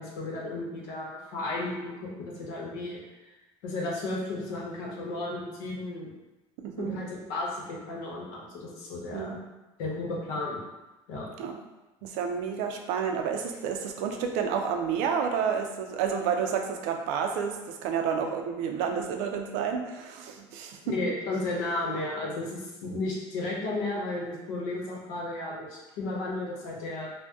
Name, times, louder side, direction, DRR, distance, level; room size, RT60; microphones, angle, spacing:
voice 1, 0.0-3.0 3.6-6.1 6.8-9.4 9.8-10.6 11.1-11.3 20.8-27.1, left 2 dB, 85° left, -3 dB, 0.9 m, -33 dB
voice 2, 6.6-7.0 9.1-9.4 11.4-11.6 12.0-20.9, right 7 dB, 85° right, 4 dB, 0.4 m, -30 dB
2.6 x 2.1 x 3.5 m, 1.1 s
cardioid pair, 135°, 12 cm